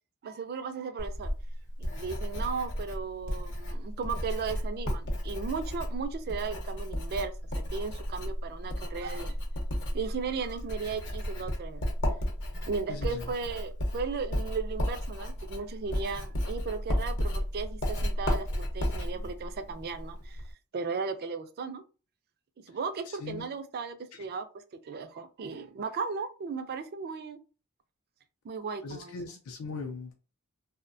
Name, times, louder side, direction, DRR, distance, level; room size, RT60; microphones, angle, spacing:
voice 1, 0.2-1.3 1.8-7.3 7.7-9.3 9.9-11.8 12.6-20.4 20.7-21.8 22.7-24.5 24.8-27.4 28.4-29.4, right 5 dB, 45° right, 0.3 m, -36 dB
Writing, 1.0-20.5, equal, 55° left, 0.8 m, -33 dB
voice 2, 12.9-13.3 23.1-23.4 24.1-24.2 28.8-30.2, left 4 dB, 75° left, 0.4 m, -40 dB
2.6 x 2.1 x 2.5 m
head